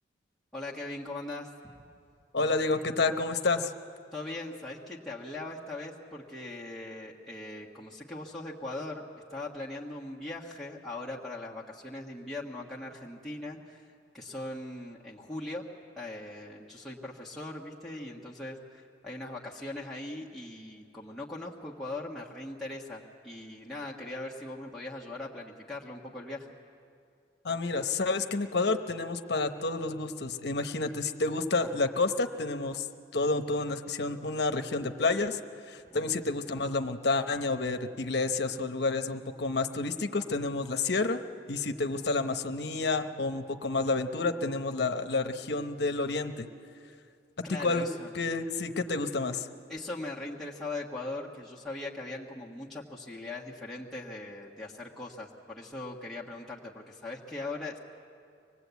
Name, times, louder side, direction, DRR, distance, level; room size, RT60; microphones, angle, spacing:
voice 1, 0.5-1.7 4.1-9.0 9.3-15.6 16.0-26.5 35.9-36.1 47.4-48.1 49.7-57.8, left 2 dB, ahead, -6 dB, 1.4 m, -40 dB
voice 2, 2.3-3.7 27.4-32.9 33.1-35.4 35.7-41.2 41.5-46.5 47.5-47.9 48.1-49.5, left 3 dB, 65° left, 7 dB, 0.9 m, -29 dB
25.0 x 20.0 x 8.2 m, 2.4 s
head